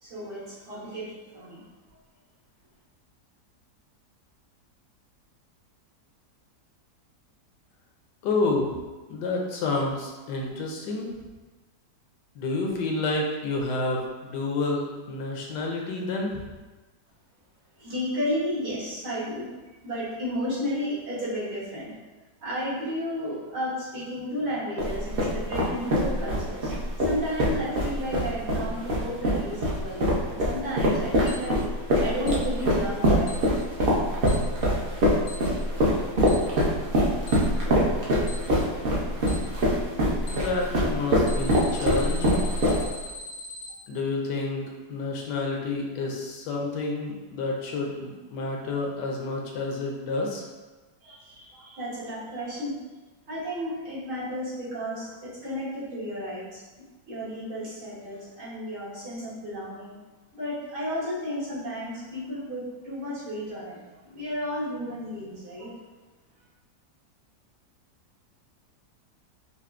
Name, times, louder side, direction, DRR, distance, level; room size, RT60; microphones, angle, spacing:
voice 1, 0.0-1.1 1.3-1.6 17.8-19.5 19.8-21.9 22.4-26.7 27.0-33.3 51.0-52.8 53.3-56.6 57.1-60.0 60.3-63.8 64.0-65.8, equal, 80° right, -10 dB, 2.2 m, -33 dB
voice 2, 8.2-8.8 9.1-11.1 12.4-16.4 40.3-42.4 43.9-50.4, left 3 dB, 85° left, -1 dB, 1.3 m, -29 dB
sound 1, 24.8-43.1, equal, 55° right, 0.6 m, -24 dB
Alarm, 31.3-31.4 32.3-32.4 33.3-33.4 34.3-34.4 35.3-35.4 36.3-36.4 37.3-37.4 38.3-38.4 39.3-39.4 40.3-40.4 41.3-43.7, left 3 dB, 60° left, 0.7 m, -40 dB
5.5 x 2.0 x 2.4 m, 1.2 s
omnidirectional pair, 1.8 m